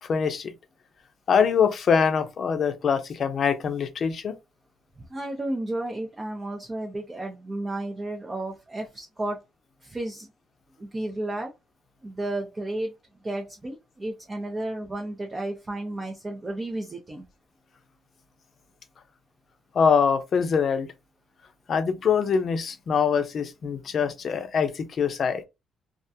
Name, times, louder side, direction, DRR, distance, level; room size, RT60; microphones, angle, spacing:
voice 1, 0.1-0.5 1.3-4.3 19.7-20.9 21.7-25.4, left 6 dB, 55° left, 0.5 m, -23 dB
voice 2, 5.0-9.4 9.8-10.3 10.8-11.5 12.0-13.0 13.2-17.3, right 1 dB, 25° right, 0.5 m, -32 dB
2.3 x 2.2 x 2.7 m
cardioid pair, 90°, 0 cm